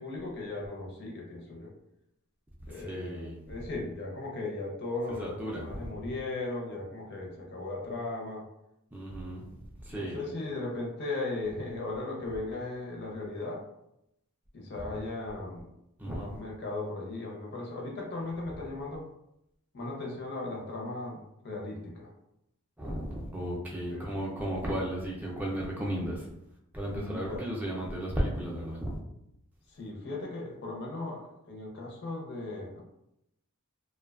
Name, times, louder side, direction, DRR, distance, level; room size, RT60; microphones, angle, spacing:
voice 1, 0.0-1.7 2.7-8.5 9.9-13.6 14.5-15.6 16.0-19.1 19.7-22.1 23.9-24.1 26.9-27.5 29.7-32.8, left 2 dB, 50° left, -1 dB, 0.6 m, -37 dB
voice 2, 2.8-3.4 5.2-5.9 8.9-9.5 9.8-10.2 14.8-14.9 16.0-16.3 22.8-26.3 26.7-29.0, right 1 dB, 5° right, -3 dB, 0.3 m, -34 dB
2.5 x 2.2 x 2.3 m, 0.82 s
head